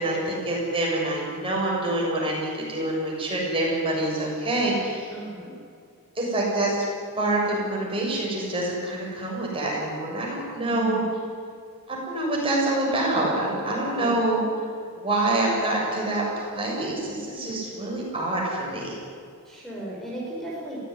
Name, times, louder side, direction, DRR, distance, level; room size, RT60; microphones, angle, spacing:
voice 1, 0.0-5.1 6.2-6.8 7.2-11.0 11.9-14.4 15.0-19.0, right 2 dB, 25° right, -3 dB, 7.4 m, -26 dB
voice 2, 5.1-5.5 10.6-11.1 13.9-14.2 19.4-20.8, right 1 dB, ahead, -5 dB, 5.5 m, -36 dB
23.0 x 17.0 x 9.8 m, 2.2 s
head